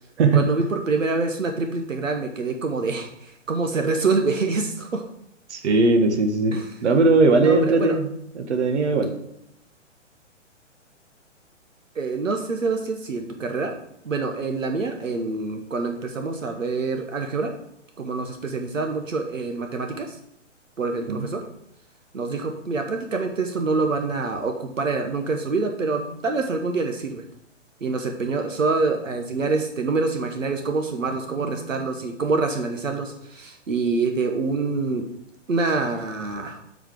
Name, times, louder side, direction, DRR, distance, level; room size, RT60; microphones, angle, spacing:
voice 1, 0.3-5.0 6.5-6.7 7.4-7.9 11.9-13.7 14.0-17.5 18.0-20.2 20.8-21.4 22.1-27.2 27.8-35.0 35.5-36.6, right 3 dB, 85° right, 4 dB, 1.3 m, -26 dB
voice 2, 5.5-6.5 6.8-8.1 8.3-9.1 21.1-21.3, right 3 dB, 60° right, 6 dB, 1.4 m, -19 dB
8.0 x 5.0 x 6.1 m, 0.77 s
figure-of-eight pair, 125°, 38 cm